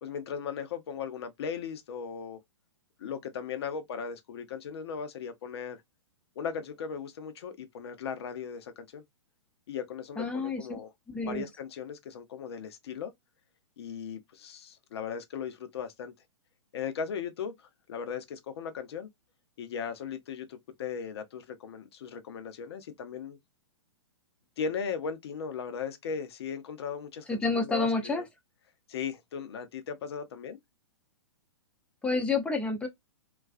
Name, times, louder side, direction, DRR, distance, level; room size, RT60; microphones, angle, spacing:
voice 1, 0.0-2.4 3.0-5.8 6.4-9.0 9.7-10.9 11.2-13.1 13.8-16.1 16.7-17.5 17.9-19.1 19.6-23.4 24.6-28.2 28.9-30.6, left 6 dB, 55° left, 0.6 m, -37 dB
voice 2, 10.2-10.8 11.1-11.5 27.3-28.2 32.0-32.9, left 3 dB, 5° left, 0.6 m, -29 dB
2.4 x 2.2 x 2.4 m
figure-of-eight pair, 115°, 16 cm